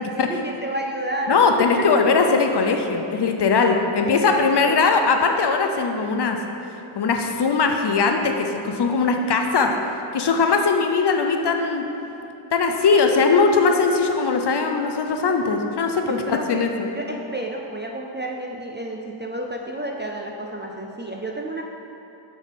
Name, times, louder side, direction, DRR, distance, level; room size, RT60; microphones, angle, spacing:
voice 1, 0.0-1.9 4.0-4.8 16.1-16.6 16.9-21.6, right 1 dB, 25° right, 0 dB, 0.3 m, -31 dB
voice 2, 1.3-6.4 7.0-9.8 10.1-11.9 12.5-16.9, left 4 dB, 55° left, 4 dB, 0.6 m, -20 dB
6.0 x 3.6 x 5.7 m, 3.0 s
wide cardioid pair, 110°, 49 cm